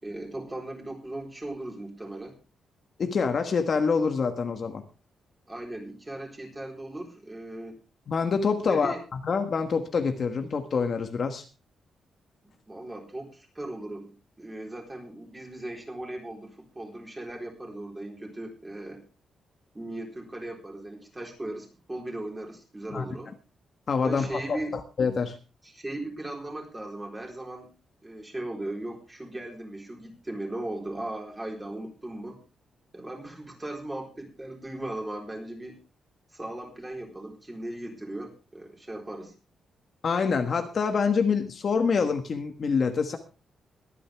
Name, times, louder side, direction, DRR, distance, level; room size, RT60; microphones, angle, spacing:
voice 1, 0.0-2.4 5.5-7.8 8.6-9.0 12.4-14.1 14.4-19.0 19.7-23.3 24.0-24.8 25.6-27.7 28.0-32.4 32.9-35.8 36.3-39.3, right 1 dB, 15° right, 1 dB, 4.1 m, -38 dB
voice 2, 3.0-4.8 8.1-11.4 22.9-23.0 23.9-24.6 25.0-25.4 40.0-43.2, left 5 dB, 45° left, 6 dB, 1.3 m, -26 dB
22.5 x 9.2 x 3.4 m, 0.32 s
cardioid pair, 145°, 0 cm